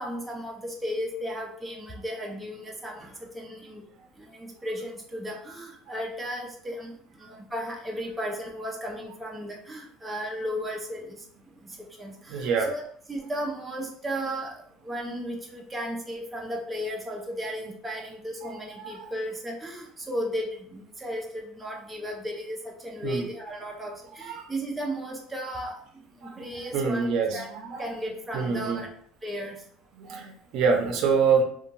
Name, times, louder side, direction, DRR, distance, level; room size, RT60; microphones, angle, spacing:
voice 1, 0.0-3.8 4.2-11.2 11.6-12.8 13.1-25.8 26.4-27.5 27.8-28.9 29.2-29.6, equal, 10° right, -1 dB, 0.4 m, -35 dB
voice 2, 12.3-12.7 18.4-18.5 18.8-19.1 23.0-23.3 24.2-24.5 26.2-26.4 26.7-27.9 28.3-28.8 30.0-31.4, right 5 dB, 55° right, 2 dB, 0.6 m, -26 dB
2.8 x 2.2 x 2.6 m, 0.63 s
cardioid pair, 140°, 0 cm